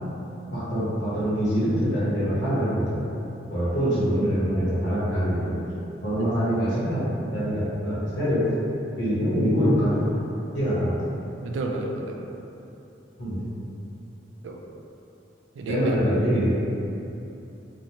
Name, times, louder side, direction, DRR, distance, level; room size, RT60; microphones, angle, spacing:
voice 1, 0.5-3.0 3.5-5.5 6.0-7.0 7.3-8.5 9.0-10.0 10.5-10.9 13.2-13.5 15.7-16.5, equal, 85° left, -11 dB, 0.8 m, -24 dB
voice 2, 11.4-12.2 14.4-14.6 15.6-16.0, right 2 dB, 90° right, 3 dB, 0.3 m, -31 dB
2.5 x 2.0 x 2.9 m, 2.9 s
head